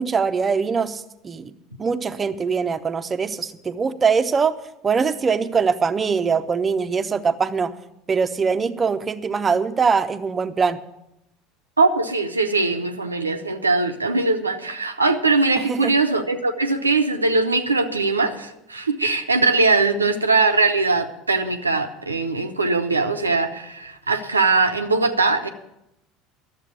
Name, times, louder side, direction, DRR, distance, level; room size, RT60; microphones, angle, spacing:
voice 1, 0.0-1.5 1.8-4.5 4.8-7.7 8.1-10.8 15.6-15.9, right 5 dB, 25° right, 10 dB, 0.8 m, -22 dB
voice 2, 11.8-25.5, right 3 dB, 85° right, 6 dB, 0.8 m, -21 dB
12.5 x 7.5 x 8.4 m, 0.86 s
figure-of-eight pair, 70°, 0 cm